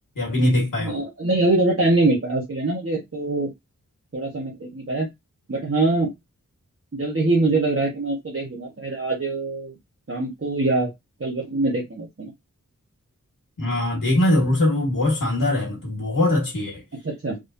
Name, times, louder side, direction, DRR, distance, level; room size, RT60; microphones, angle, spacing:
voice 1, 0.1-1.0 13.6-16.8, left 1 dB, 80° left, 1.6 m, -21 dB
voice 2, 0.8-3.5 4.1-5.1 5.5-6.1 6.9-9.7 10.1-10.9 11.2-12.3 17.0-17.4, right 2 dB, 40° right, 1.2 m, -23 dB
3.7 x 3.2 x 2.7 m
wide cardioid pair, 50°, 33 cm